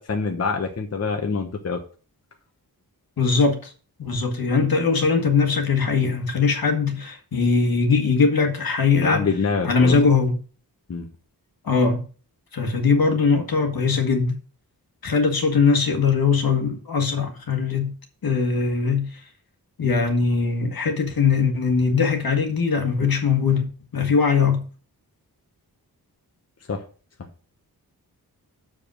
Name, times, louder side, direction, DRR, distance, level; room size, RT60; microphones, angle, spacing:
voice 1, 0.0-1.8 9.0-10.0 10.9-11.1 26.7-26.8, left 4 dB, 40° left, 1.0 m, -25 dB
voice 2, 3.2-3.7 4.0-9.3 9.6-10.4 11.6-12.1 12.5-14.4 15.0-17.9 18.2-19.2 19.8-24.6, left 5 dB, 70° left, 1.7 m, -21 dB
7.2 x 5.1 x 6.1 m
wide cardioid pair, 150°, 38 cm